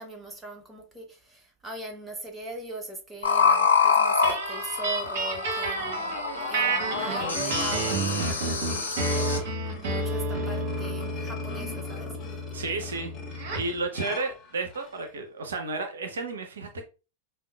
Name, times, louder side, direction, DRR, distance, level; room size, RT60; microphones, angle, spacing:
voice 1, 0.0-6.1 6.5-9.5 9.8-12.1, right 2 dB, 10° right, 0.9 m, -40 dB
sound 1, 3.2-9.4, left 5 dB, 75° left, 0.7 m, -26 dB
sound 2, 4.2-13.8, right 2 dB, 50° right, 1.0 m, -31 dB
sound 3, 5.8-15.1, left 3 dB, 25° left, 0.8 m, -43 dB
voice 2, 12.5-16.8, right 3 dB, 65° right, 0.5 m, -32 dB
5.1 x 2.2 x 2.2 m
figure-of-eight pair, 90°, 0 cm